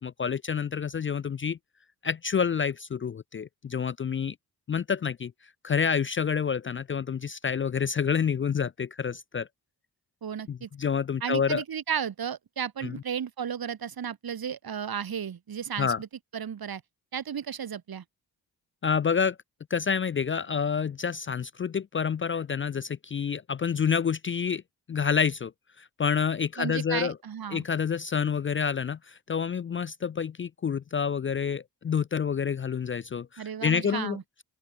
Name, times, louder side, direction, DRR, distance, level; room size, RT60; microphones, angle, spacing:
voice 1, 0.0-1.6 2.0-4.3 4.7-5.3 5.6-9.5 10.5-11.6 12.8-13.0 15.8-16.0 18.8-19.4 19.7-24.6 24.9-25.5 25.8-27.2 27.5-34.2, left 6 dB, 30° left, 0.4 m, -28 dB
voice 2, 10.2-10.7 11.2-16.1 16.3-16.8 17.1-18.0 26.6-27.6 33.4-34.2, right 8 dB, 60° right, 1.7 m, -34 dB
open air
cardioid pair, 50°, 41 cm